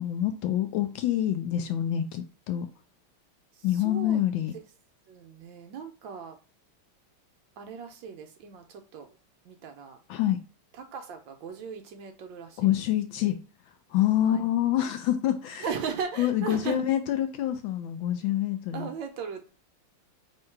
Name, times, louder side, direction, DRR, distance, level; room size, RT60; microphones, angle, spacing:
voice 1, 0.0-2.7 3.6-4.5 10.1-10.4 12.6-13.4 13.9-15.6 16.2-18.9, left 12 dB, 75° left, 1.2 m, -26 dB
voice 2, 3.5-4.2 5.1-6.4 7.6-9.1 9.4-10.0 10.7-12.7 14.2-14.4 15.6-16.8 18.7-19.5, right 6 dB, 70° right, 1.2 m, -37 dB
3.7 x 2.7 x 4.4 m
omnidirectional pair, 2.4 m